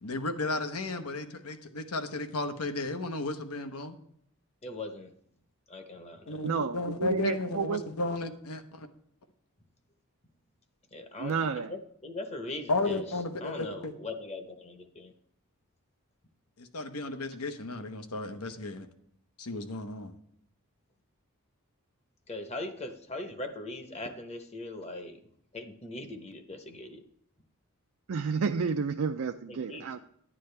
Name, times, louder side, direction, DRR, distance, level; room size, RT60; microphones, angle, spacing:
voice 1, 0.0-4.0 6.3-8.9 12.7-13.9 16.6-18.9 19.4-20.1, left 2 dB, 80° left, 8 dB, 1.0 m, -34 dB
voice 2, 4.6-5.1 5.7-6.4 10.9-13.0 13.4-15.1 22.3-25.2 25.5-27.0 29.5-30.0, left 2 dB, 30° left, 7 dB, 0.9 m, -40 dB
voice 3, 6.4-7.8 11.2-11.7 28.1-30.0, right 5 dB, 65° right, 6 dB, 0.4 m, -30 dB
10.5 x 10.0 x 3.3 m, 0.69 s
head